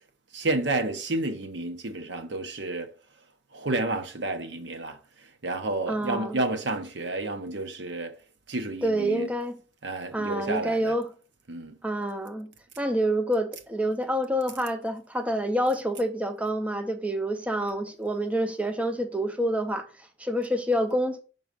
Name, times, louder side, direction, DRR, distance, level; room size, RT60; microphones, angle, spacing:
voice 1, 0.3-2.9 3.5-5.0 5.4-8.1 8.5-9.3 9.8-11.0 11.5-11.7, right 2 dB, 65° right, 0.9 m, -30 dB
voice 2, 5.9-6.4 8.8-9.6 10.1-11.1 11.8-12.5 12.8-21.2, right 1 dB, 5° right, 0.5 m, -27 dB
6.0 x 4.0 x 5.2 m
head